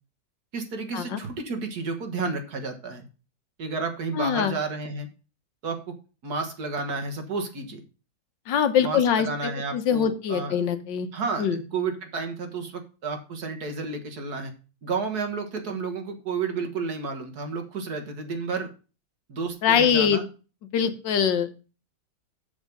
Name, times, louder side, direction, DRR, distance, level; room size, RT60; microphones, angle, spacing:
voice 1, 0.5-3.1 3.6-5.1 5.6-6.0 6.2-7.8 8.8-10.6 11.1-11.5 11.7-14.5 14.8-18.7 19.3-20.3, right 4 dB, 60° right, 5 dB, 2.0 m, -31 dB
voice 2, 4.2-4.5 8.5-11.1 11.4-11.6 19.6-20.2 20.7-21.6, left 8 dB, 80° left, 10 dB, 1.7 m, -23 dB
7.2 x 6.3 x 5.3 m, 0.33 s
omnidirectional pair, 1.9 m